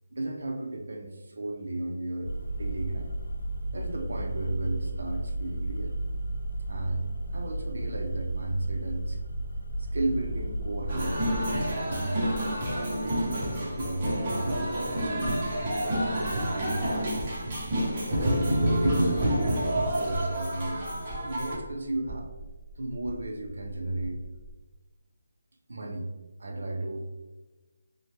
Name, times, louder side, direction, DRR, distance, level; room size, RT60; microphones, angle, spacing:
voice 1, 0.1-2.3 2.6-3.1 3.7-6.0 6.7-9.2 9.8-11.4 11.7-15.4 15.8-17.2 18.1-22.3 22.8-24.2 25.7-26.1 26.4-27.1, right 2 dB, 65° right, 1 dB, 0.4 m, -34 dB
sound 1, 2.3-11.7, right 1 dB, 65° left, 0.3 m, -33 dB
sound 2, 9.5-24.5, right 1 dB, 25° left, 1.1 m, -44 dB
sound 3, 10.9-21.5, equal, 20° right, 0.6 m, -28 dB
3.2 x 2.0 x 3.0 m, 1.2 s
hypercardioid pair, 180°, 0 cm